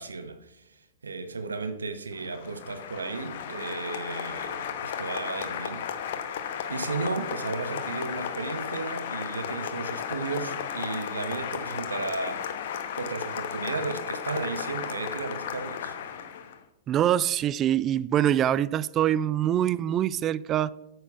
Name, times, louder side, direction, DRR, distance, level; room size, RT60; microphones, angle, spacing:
voice 1, 0.0-5.9 6.7-12.5 13.0-15.9, right 4 dB, 80° right, 0.9 m, -34 dB
Applause, 2.1-16.6, left 8 dB, 60° left, 1.1 m, -34 dB
voice 2, 16.9-20.7, right 11 dB, 30° right, 0.4 m, -24 dB
9.2 x 6.3 x 6.0 m
figure-of-eight pair, 105°, 0 cm